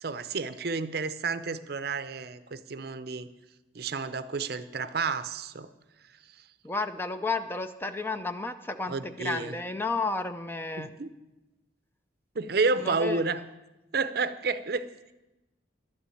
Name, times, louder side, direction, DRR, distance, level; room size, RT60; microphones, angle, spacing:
voice 1, 0.0-3.3 3.7-5.7 8.9-9.6 10.8-11.1 12.4-13.4 13.9-14.9, right 4 dB, 55° right, 13 dB, 0.6 m, -30 dB
voice 2, 6.6-10.9 12.8-13.4, left 3 dB, 10° left, 9 dB, 0.5 m, -32 dB
12.0 x 7.0 x 9.1 m, 1.0 s
head